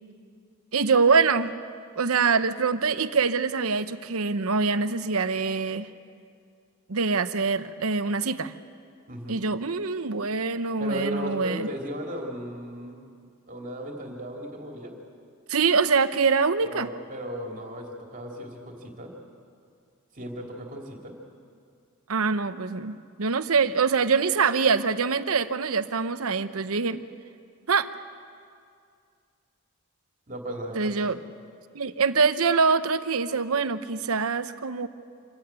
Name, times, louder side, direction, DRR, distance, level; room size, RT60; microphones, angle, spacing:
voice 1, 0.7-1.6 2.0-5.9 6.9-8.5 9.3-11.7 15.5-16.9 22.1-27.0 27.7-27.9 30.7-31.2 31.7-34.9, right 5 dB, 70° right, 11 dB, 0.9 m, -24 dB
voice 2, 9.1-9.4 10.8-13.0 13.5-15.0 16.7-19.1 20.1-21.1 30.3-31.2, equal, 40° right, 0 dB, 2.9 m, -36 dB
26.5 x 15.5 x 8.9 m, 2.3 s
head